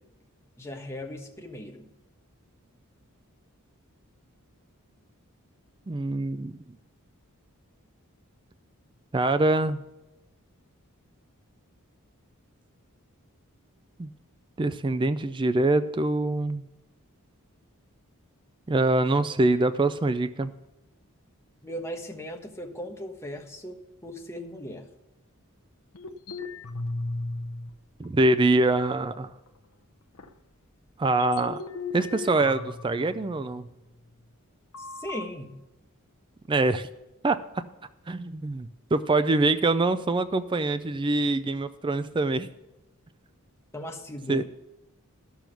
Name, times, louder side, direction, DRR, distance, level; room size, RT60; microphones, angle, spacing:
voice 1, 0.6-1.9 21.6-23.8 24.0-24.9 34.8-35.5 43.7-44.4, equal, 10° left, 2 dB, 1.2 m, -38 dB
voice 2, 5.9-6.5 9.1-9.8 14.0-14.1 14.6-16.7 18.7-20.5 28.0-29.3 31.0-31.6 31.9-33.7 36.5-36.9 37.2-37.4 38.1-42.5 44.3-44.4, right 2 dB, 20° right, 12 dB, 0.4 m, -24 dB
sound 1, 25.9-27.7 28.0-29.0 29.5-29.6 30.1-30.3 31.1-33.6 34.7-35.2, left 3 dB, 80° left, 0.9 m, -37 dB
12.0 x 7.1 x 5.9 m, 0.97 s
head